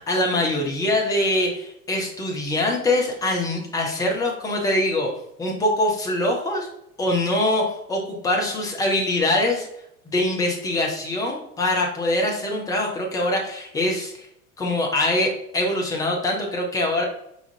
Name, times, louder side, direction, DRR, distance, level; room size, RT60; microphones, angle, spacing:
voice 1, 0.0-5.1 5.4-6.7 7.0-9.7 10.1-14.3 14.6-17.0, left 1 dB, 10° left, 0 dB, 0.4 m, -23 dB
4.8 x 3.2 x 2.5 m, 0.78 s
figure-of-eight pair, 85°, 45 cm